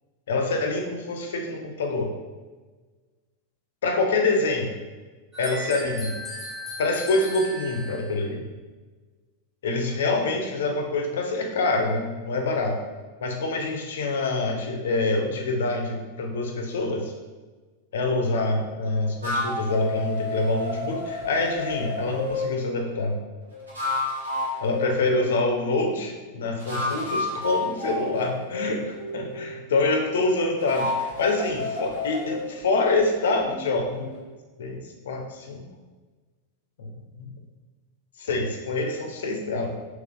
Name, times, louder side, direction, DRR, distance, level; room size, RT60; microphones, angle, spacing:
voice 1, 0.3-2.1 3.8-4.7 5.4-6.2 6.8-8.4 9.6-12.8 13.2-17.1 17.9-23.2 24.6-34.1 34.6-35.7 36.8-37.3 38.2-39.7, left 2 dB, 60° left, 3 dB, 0.5 m, -26 dB
sound 1, 5.3-8.2, left 1 dB, 10° left, 1.1 m, -36 dB
sound 2, 19.2-22.5 23.5-25.7 26.6-29.8 30.6-34.2, left 2 dB, 75° right, 1.2 m, -31 dB
3.7 x 2.9 x 2.4 m, 1.3 s
figure-of-eight pair, 90°, 0 cm